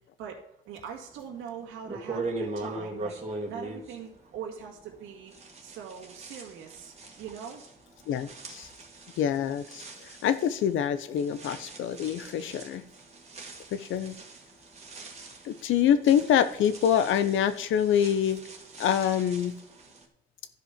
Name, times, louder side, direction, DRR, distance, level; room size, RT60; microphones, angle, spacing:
voice 1, 0.7-5.3 5.6-7.6 15.8-15.9, right 7 dB, 90° right, 0 dB, 2.1 m, -42 dB
sound 1, 1.3-1.4 1.9-5.0 5.3-20.0, right 2 dB, 35° right, 2.1 m, -41 dB
voice 2, 8.1-8.7 9.2-12.8 13.7-14.2 15.4-18.4 18.8-19.6, left 9 dB, 80° left, 13 dB, 0.9 m, -26 dB
12.0 x 5.2 x 5.1 m, 0.77 s
cardioid pair, 90°, 20 cm